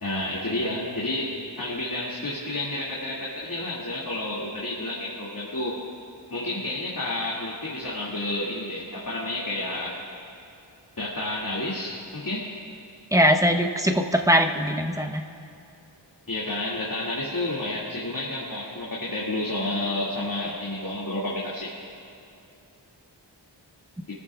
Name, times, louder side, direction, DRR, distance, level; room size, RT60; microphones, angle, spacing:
voice 1, 0.0-5.8 6.3-10.0 11.0-12.5 16.3-21.7, left 1 dB, 50° left, -7 dB, 2.5 m, -30 dB
voice 2, 13.1-15.2, equal, 10° right, 4 dB, 1.0 m, -21 dB
28.5 x 14.0 x 2.4 m, 2.7 s
wide cardioid pair, 75°, 44 cm